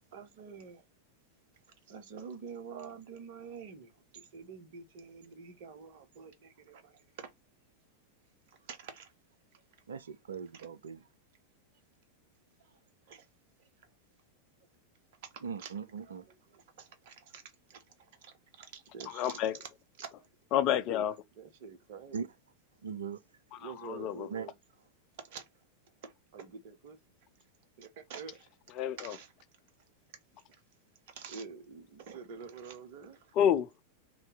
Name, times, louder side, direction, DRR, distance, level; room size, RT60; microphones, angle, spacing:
voice 1, 0.1-0.8 1.9-7.3 8.7-9.1 10.5-10.7 13.1-13.2 15.3-17.4 17.7-17.8 18.2-19.7 20.0-20.1 21.4-22.3 23.6-24.5 25.2-25.4 26.0-27.0 27.8-28.4 29.0-29.3 31.2-33.2, right 6 dB, 50° right, 0.9 m, -47 dB
voice 2, 9.9-11.0 15.4-16.2 22.1-22.3 22.8-23.2 24.3-24.5, right 6 dB, 65° right, 0.4 m, -39 dB
voice 3, 19.1-19.6 20.5-21.2 23.5-24.3 28.8-29.2 33.4-33.8, left 10 dB, 40° left, 0.4 m, -29 dB
3.3 x 2.7 x 3.8 m
figure-of-eight pair, 90°, 0 cm